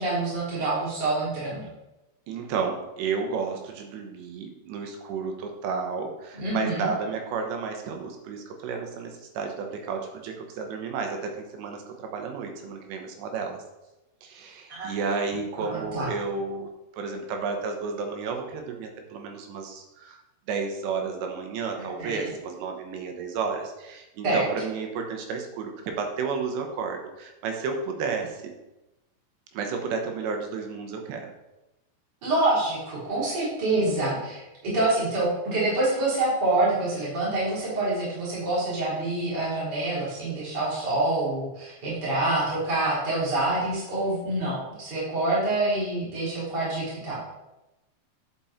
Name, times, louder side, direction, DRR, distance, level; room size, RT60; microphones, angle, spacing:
voice 1, 0.0-1.7 6.3-6.9 14.7-14.9 15.6-16.1 21.8-22.3 24.2-24.5 32.2-47.2, right 2 dB, 25° right, -8 dB, 3.7 m, -26 dB
voice 2, 2.3-13.6 14.2-20.2 20.5-28.5 29.5-31.3 33.8-34.2, right 5 dB, 80° right, 3 dB, 3.3 m, -32 dB
10.5 x 5.7 x 4.3 m, 0.96 s
omnidirectional pair, 5.0 m